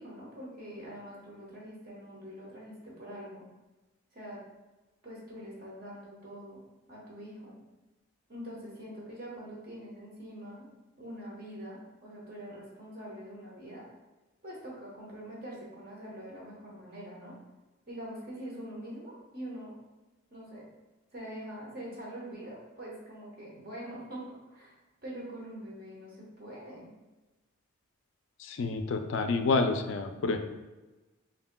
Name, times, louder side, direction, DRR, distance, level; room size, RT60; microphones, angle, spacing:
voice 1, 0.0-3.4 4.1-4.4 5.0-6.6 6.9-7.6 8.3-10.7 11.0-13.8 14.4-17.3 17.9-19.7 20.3-20.7 21.1-24.2 24.5-24.8 25.0-26.9, equal, 45° right, -4 dB, 1.0 m, -44 dB
voice 2, 28.4-30.4, left 3 dB, 55° left, 6 dB, 0.4 m, -28 dB
5.1 x 2.8 x 2.2 m, 1.1 s
head